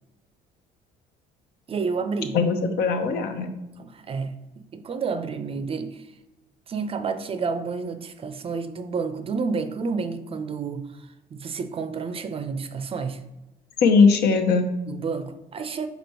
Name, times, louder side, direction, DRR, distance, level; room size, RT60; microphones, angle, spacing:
voice 1, 1.7-2.4 3.8-6.1 6.7-13.2 14.9-15.9, right 5 dB, 35° right, 0.5 m, -30 dB
voice 2, 2.3-3.5 13.8-14.7, left 4 dB, 70° left, 0.8 m, -19 dB
5.1 x 4.4 x 4.5 m
cardioid pair, 110°, 17 cm